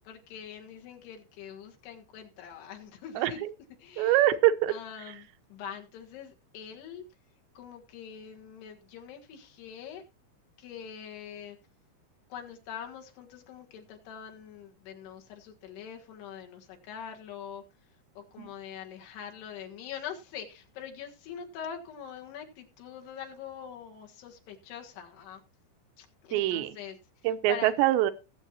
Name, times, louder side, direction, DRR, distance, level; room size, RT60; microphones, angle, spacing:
voice 1, 0.1-3.4 3.8-4.3 4.7-7.1 7.6-10.0 10.6-11.6 12.3-17.6 18.2-25.4 26.0-27.0 27.5-27.7, left 8 dB, 70° left, 3 dB, 3.5 m, -43 dB
voice 2, 3.2-3.5 4.0-4.7 18.4-18.5 26.3-26.7 27.2-28.1, right 14 dB, 80° right, 12 dB, 3.1 m, -24 dB
19.5 x 8.2 x 2.9 m, 0.29 s
omnidirectional pair, 5.1 m